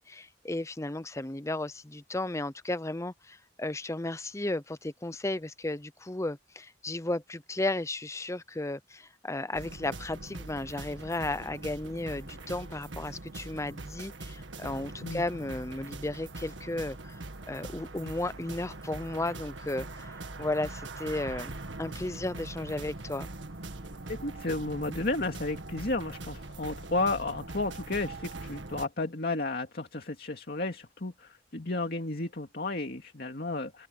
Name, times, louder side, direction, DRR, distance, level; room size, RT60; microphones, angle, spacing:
voice 1, 0.0-17.2 17.5-23.3, left 2 dB, 15° left, 0.7 m, -34 dB
sound 1, 9.5-28.9, right 2 dB, 80° right, 1.8 m, -42 dB
voice 2, 24.1-33.9, left 2 dB, 55° left, 2.3 m, -33 dB
head